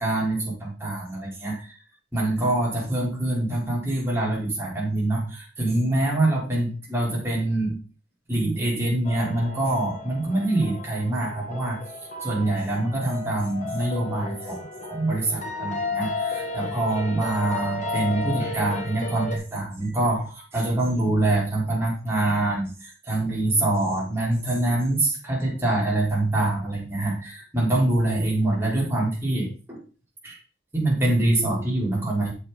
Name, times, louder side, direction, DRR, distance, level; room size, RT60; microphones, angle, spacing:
voice 1, 0.0-1.7 2.1-7.8 8.3-11.8 12.2-29.8 30.2-30.4 30.7-32.3, right 2 dB, 15° right, -5 dB, 4.0 m, -25 dB
sound 1, 9.0-19.4, left 3 dB, 40° left, 1.5 m, -33 dB
8.1 x 7.4 x 4.0 m, 0.36 s
head